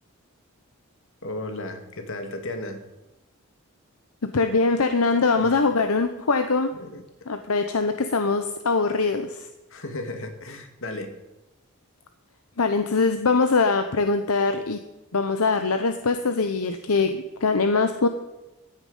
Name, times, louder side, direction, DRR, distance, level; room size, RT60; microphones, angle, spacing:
voice 1, 1.2-2.8 5.4-5.6 6.8-7.0 9.7-11.2, left 2 dB, 65° left, 6 dB, 2.1 m, -34 dB
voice 2, 4.2-6.7 7.3-9.5 12.6-14.8 15.1-18.1, left 4 dB, 80° left, 8 dB, 0.9 m, -22 dB
15.0 x 9.8 x 5.5 m, 1.0 s
head